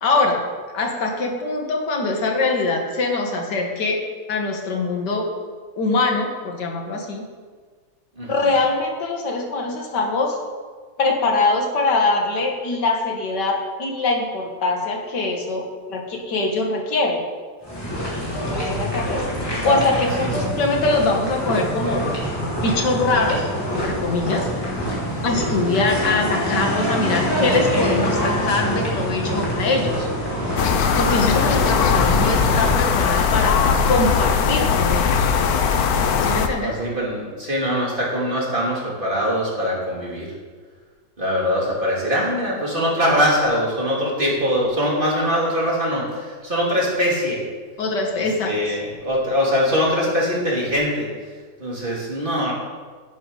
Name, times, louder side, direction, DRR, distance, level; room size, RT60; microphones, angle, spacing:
voice 1, 0.0-4.0 4.3-5.3 5.8-7.3 8.2-10.4 11.0-17.2 18.7-22.0 22.4-24.5 25.2-30.1 31.0-33.6 33.9-35.3 36.2-36.8 47.8-48.8, left 3 dB, 90° left, 2 dB, 2.1 m, -23 dB
sound 1, 17.6-32.9, equal, 15° left, 3.3 m, -25 dB
voice 2, 19.3-19.7 20.2-20.3 36.6-40.3 41.2-47.4 48.2-51.1 51.6-52.5, equal, 30° right, -5 dB, 2.8 m, -22 dB
sound 2, 30.6-36.5, left 6 dB, 65° left, 1.2 m, -19 dB
11.5 x 10.5 x 4.0 m, 1.5 s
omnidirectional pair, 1.8 m